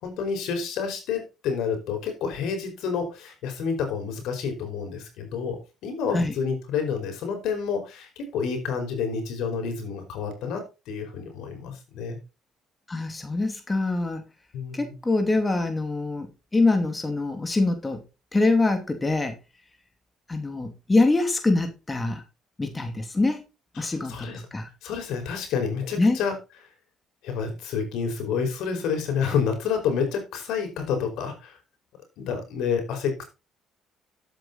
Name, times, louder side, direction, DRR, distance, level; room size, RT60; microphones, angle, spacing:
voice 1, 0.0-12.2 14.5-14.9 23.8-24.4 24.8-26.3 27.2-31.6 32.2-33.2, left 6 dB, 75° left, 4.9 m, -29 dB
voice 2, 12.9-14.2 14.7-16.3 16.5-18.0 18.3-19.4 20.3-22.2 22.6-23.4 23.8-24.7 26.0-26.2, left 2 dB, 20° left, 2.6 m, -24 dB
12.0 x 8.6 x 4.0 m
supercardioid pair, 80°, 0 cm